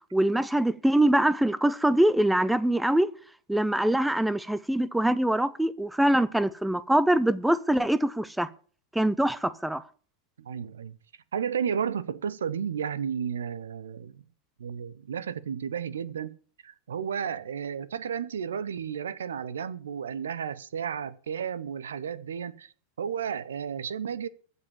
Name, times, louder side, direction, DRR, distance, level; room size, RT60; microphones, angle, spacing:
voice 1, 0.1-3.1 3.5-8.5 8.9-9.8, right 1 dB, 5° right, 0.6 m, -24 dB
voice 2, 10.4-10.9 11.3-14.2 14.6-16.4 16.6-22.7 23.0-24.3, right 7 dB, 65° right, 0.7 m, -33 dB
15.0 x 5.5 x 8.2 m
figure-of-eight pair, 90°, 0 cm